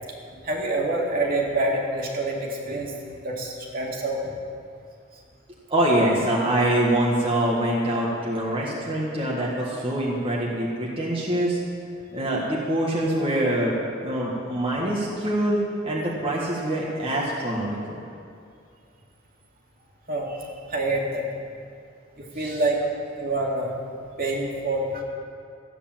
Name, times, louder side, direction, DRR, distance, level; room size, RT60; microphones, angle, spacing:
voice 1, 0.3-3.0 3.2-4.4 20.1-21.3 22.2-22.9 23.2-23.8 24.2-25.0, right 2 dB, 50° right, -2 dB, 2.3 m, -27 dB
voice 2, 5.7-11.6 12.1-13.8 14.0-15.6 15.8-18.0 22.4-22.6, right 1 dB, 30° right, -5 dB, 1.7 m, -24 dB
14.0 x 9.7 x 7.5 m, 2.4 s
head